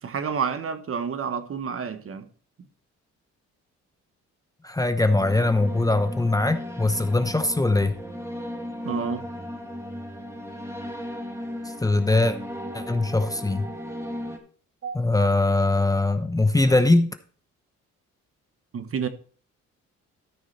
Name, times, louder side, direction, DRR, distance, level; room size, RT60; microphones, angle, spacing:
voice 1, 0.0-2.3 8.8-9.3 14.8-15.0 18.7-19.1, right 6 dB, 45° right, 1.3 m, -29 dB
voice 2, 4.6-8.0 11.8-12.4 12.7-13.7 14.9-17.1, left 2 dB, 10° left, 0.8 m, -21 dB
sound 1, 5.1-14.4, equal, 10° right, 2.1 m, -36 dB
13.5 x 6.2 x 4.3 m
cardioid pair, 90°, 30 cm